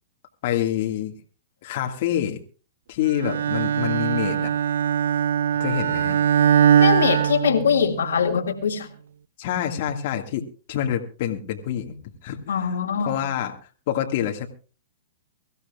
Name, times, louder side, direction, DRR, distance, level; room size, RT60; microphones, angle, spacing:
voice 1, 0.4-1.2 1.6-2.4 2.9-4.5 5.6-6.2 9.4-12.0 12.2-12.6 13.0-14.5, left 10 dB, 55° left, 1.8 m, -27 dB
Bowed string instrument, 3.2-8.2, right 8 dB, 70° right, 0.6 m, -21 dB
voice 2, 6.7-8.9 12.5-13.2, left 7 dB, 75° left, 2.1 m, -22 dB
23.5 x 15.0 x 2.3 m
hypercardioid pair, 115°, 0 cm